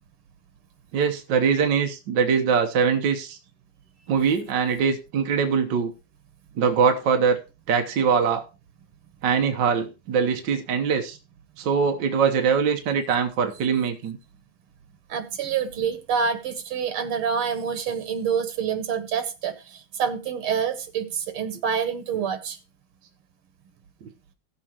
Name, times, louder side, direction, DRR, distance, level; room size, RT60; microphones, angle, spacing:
voice 1, 0.9-3.4 4.1-5.9 6.6-7.4 7.7-8.4 9.2-11.2 11.6-14.2, right 6 dB, 60° right, 1.6 m, -22 dB
voice 2, 15.1-22.6, right 7 dB, 90° right, 2.0 m, -27 dB
16.5 x 7.5 x 2.9 m
omnidirectional pair, 2.3 m